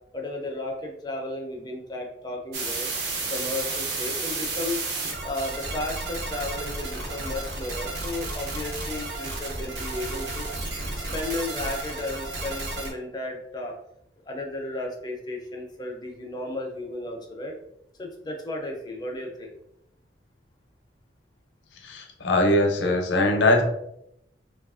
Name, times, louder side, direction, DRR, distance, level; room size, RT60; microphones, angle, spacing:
voice 1, 0.1-2.9 3.3-4.9 5.2-10.5 10.9-13.7 14.3-17.6 18.0-19.5, left 2 dB, 20° left, 1 dB, 0.4 m, -34 dB
sound 1, 2.5-12.9, right 3 dB, 65° right, 0.6 m, -32 dB
voice 2, 21.8-23.6, left 1 dB, 70° left, 3 dB, 0.5 m, -21 dB
2.9 x 2.3 x 2.4 m, 0.77 s
head